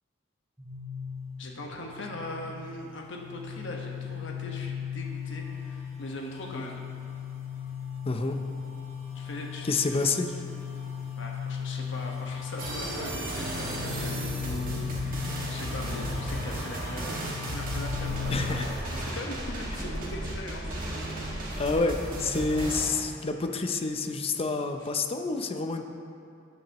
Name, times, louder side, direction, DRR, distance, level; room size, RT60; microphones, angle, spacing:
sound 1, 0.6-18.5, left 7 dB, 15° right, 2.1 m, -37 dB
voice 1, 1.4-6.8 9.1-10.0 11.2-20.7, left 1 dB, 65° left, 0 dB, 1.3 m, -40 dB
voice 2, 8.1-8.4 9.6-10.3 18.3-18.7 21.6-25.8, left 3 dB, 30° left, 6 dB, 0.5 m, -28 dB
sound 2, 12.6-22.8, right 1 dB, 45° right, 1.8 m, -34 dB
17.5 x 6.0 x 3.0 m, 2.5 s
head